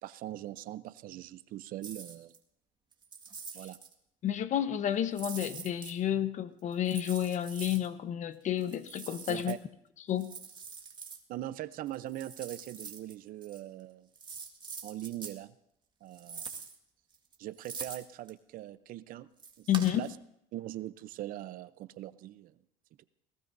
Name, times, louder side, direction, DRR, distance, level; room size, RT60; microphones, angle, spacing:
voice 1, 0.0-2.3 3.5-3.8 9.3-9.6 11.3-14.1 14.8-15.5 16.0-16.6 17.4-19.3 19.6-19.7 19.9-20.1 20.5-22.5 23.0-23.1, right 14 dB, 60° right, 14 dB, 0.7 m, -41 dB
sound 1, 1.8-2.4 2.9-3.9 5.1-5.9 6.7-7.9 8.6-9.5 10.2-11.2 11.9-13.1 13.4-13.6 14.1-15.4 16.1-16.8 17.1-18.3 19.4-20.1, right 5 dB, 30° right, 1.9 m, -44 dB
voice 2, 4.2-9.6 10.1-10.3 19.7-20.1, left 10 dB, 50° left, 11 dB, 1.0 m, -30 dB
29.0 x 18.5 x 2.7 m, 0.74 s
cardioid pair, 110°, 16 cm